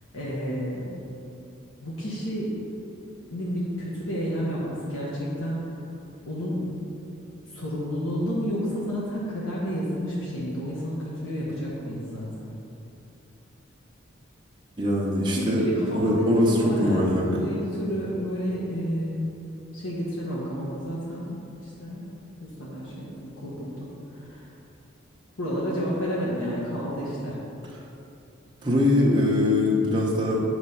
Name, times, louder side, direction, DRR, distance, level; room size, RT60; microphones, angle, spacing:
voice 1, 0.1-0.9 1.8-2.5 3.3-5.7 6.3-6.7 7.5-12.5 15.3-19.5 19.7-22.0 22.4-24.5 25.4-27.4, equal, 85° left, -6 dB, 1.0 m, -31 dB
voice 2, 14.8-15.7 15.9-17.3 28.6-30.4, left 1 dB, 20° right, -4 dB, 0.7 m, -22 dB
8.0 x 3.2 x 5.5 m, 2.8 s
head